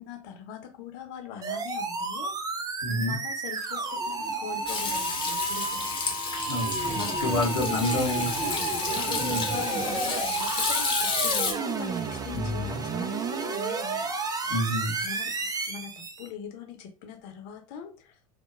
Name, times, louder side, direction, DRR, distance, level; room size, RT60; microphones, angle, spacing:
voice 1, 0.0-2.3 2.9-6.0 6.9-7.1 7.5-8.1 8.4-14.1 15.0-15.3 15.7-18.1, left 7 dB, 50° left, 4 dB, 0.8 m, -41 dB
sound 1, 1.4-16.3, right 4 dB, 20° right, 0.4 m, -31 dB
voice 2, 2.8-3.2 6.5-8.3 9.2-9.5 12.3-12.8 14.5-15.0, left 1 dB, 90° left, -6 dB, 0.8 m, -29 dB
Hands / Sink (filling or washing), 4.7-11.5, left 5 dB, 25° left, 0.9 m, -31 dB
2.8 x 2.1 x 2.5 m, 0.33 s
figure-of-eight pair, 80°, 20 cm